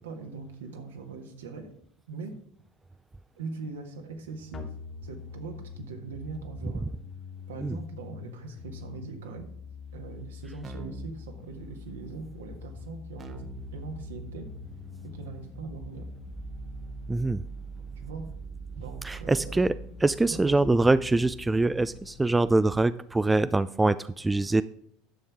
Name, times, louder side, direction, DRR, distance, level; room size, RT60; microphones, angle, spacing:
voice 1, 0.0-1.7 2.1-2.3 3.3-4.7 5.0-6.8 7.5-9.5 9.9-14.5 15.0-16.1 18.0-18.3 18.8-19.6 20.3-20.7, right 4 dB, 75° right, 4 dB, 1.5 m, -41 dB
sound 1, 4.5-22.5, left 2 dB, 30° left, 1.6 m, -43 dB
Keyboard (musical), 10.6-11.2 13.2-22.1, right 4 dB, 30° right, 1.0 m, -46 dB
voice 2, 17.1-17.4 19.0-19.7 20.0-24.6, right 2 dB, 10° right, 15 dB, 0.3 m, -24 dB
11.0 x 6.9 x 3.6 m, 0.67 s
figure-of-eight pair, 75°, 0 cm